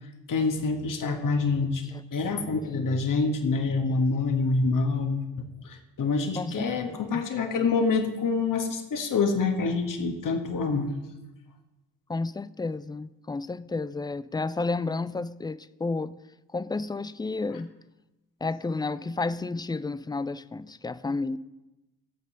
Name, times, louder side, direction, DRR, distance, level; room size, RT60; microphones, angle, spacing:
voice 1, 0.3-1.8 2.1-5.2 5.6-10.9, left 4 dB, 55° left, 1.9 m, -26 dB
voice 2, 6.4-7.2 12.1-16.2 16.5-17.7 18.4-21.4, left 3 dB, 10° left, 0.4 m, -31 dB
14.5 x 8.3 x 5.2 m
hypercardioid pair, 40°, 39 cm